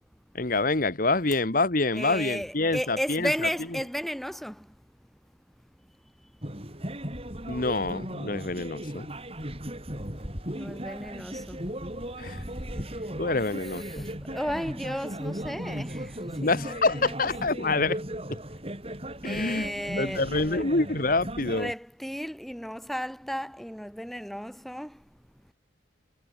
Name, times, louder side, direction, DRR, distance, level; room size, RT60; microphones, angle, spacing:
voice 1, 0.3-3.5 7.5-9.1 12.2-12.4 13.2-14.1 16.3-18.0 18.3-18.4 19.2-19.7 20.0-21.7, left 3 dB, 45° left, 1.4 m, -26 dB
voice 2, 1.9-4.7 10.6-11.6 13.8-16.2 16.4-17.3 19.2-20.7 21.5-24.9, equal, ahead, 0.9 m, -34 dB
sound 1, 6.4-21.7, right 1 dB, 30° right, 7.5 m, -37 dB
head